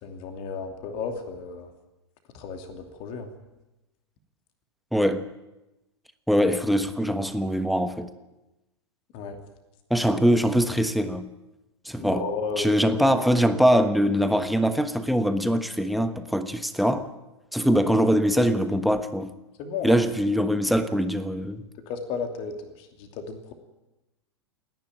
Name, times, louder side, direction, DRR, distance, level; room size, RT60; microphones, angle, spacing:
voice 1, 0.0-1.7 2.3-3.3 9.1-9.4 12.0-12.7 19.6-20.0 21.9-23.5, left 5 dB, 40° left, 2.7 m, -33 dB
voice 2, 4.9-5.3 6.3-8.1 9.9-11.3 11.8-12.3 12.6-17.1 17.5-19.3 19.8-21.6, equal, ahead, 1.2 m, -22 dB
28.0 x 10.5 x 9.0 m
figure-of-eight pair, 95°, 14 cm